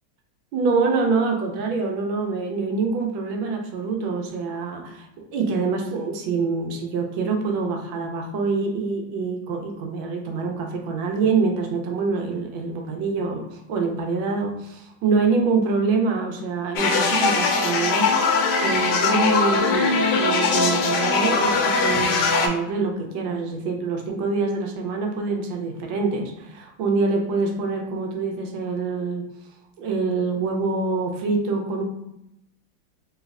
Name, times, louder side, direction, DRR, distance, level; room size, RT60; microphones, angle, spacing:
voice 1, 0.5-29.3 29.8-31.8, right 4 dB, 75° right, 2 dB, 1.3 m, -25 dB
sound 1, 16.8-22.5, left 4 dB, 85° left, 1.4 m, -21 dB
3.3 x 3.1 x 2.4 m, 0.83 s
omnidirectional pair, 2.2 m